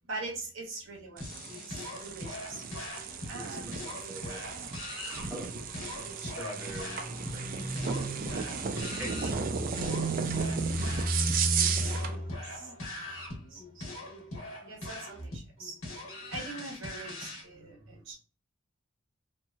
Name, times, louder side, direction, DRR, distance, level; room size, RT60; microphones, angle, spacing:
voice 1, 0.0-2.6 3.3-3.8 4.6-4.8 6.3-13.9 14.6-15.8 16.3-18.2, right 1 dB, 70° right, -3 dB, 1.1 m, -37 dB
sound 1, 1.2-17.4, left 1 dB, 80° left, 1.2 m, -42 dB
sound 2, 1.2-12.2, right 6 dB, 40° right, 0.3 m, -35 dB
voice 2, 3.3-4.4 5.3-5.5 5.9-8.1 8.9-10.0, equal, 10° right, -8 dB, 1.4 m, -44 dB
2.9 x 2.7 x 2.3 m, 0.37 s
head